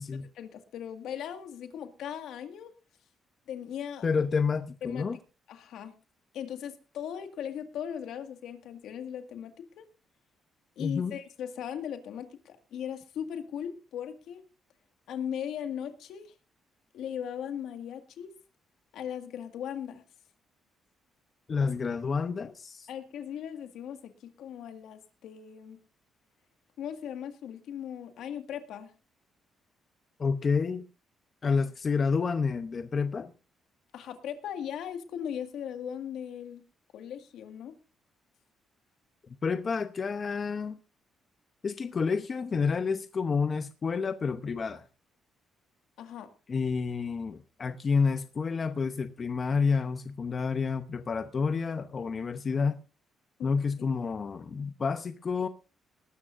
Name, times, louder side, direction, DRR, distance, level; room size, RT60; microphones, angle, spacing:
voice 1, 0.3-2.7 3.5-4.1 4.8-5.1 5.5-5.9 6.3-9.9 10.8-14.4 15.1-16.3 16.9-18.3 18.9-20.0 22.9-25.8 26.8-28.9 33.9-36.6 36.9-37.7 46.0-46.3 53.4-53.5, left 9 dB, 80° left, 1.9 m, -38 dB
voice 2, 4.0-5.2 10.8-11.2 21.5-22.9 30.2-30.8 31.4-33.3 39.4-40.8 41.6-44.9 46.5-52.8 53.4-55.5, left 5 dB, 40° left, 0.8 m, -29 dB
20.0 x 12.5 x 2.6 m
cardioid pair, 90°, 0 cm